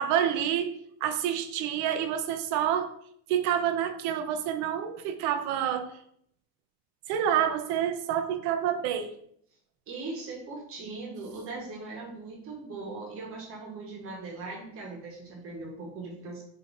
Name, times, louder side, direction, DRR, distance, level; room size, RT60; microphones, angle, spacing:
voice 1, 0.0-2.9 3.3-5.9 7.1-9.1, right 9 dB, 55° right, 9 dB, 0.6 m, -28 dB
voice 2, 9.9-16.4, right 3 dB, 40° right, -1 dB, 1.1 m, -39 dB
5.1 x 2.8 x 2.5 m, 0.68 s
supercardioid pair, 125°, 35 cm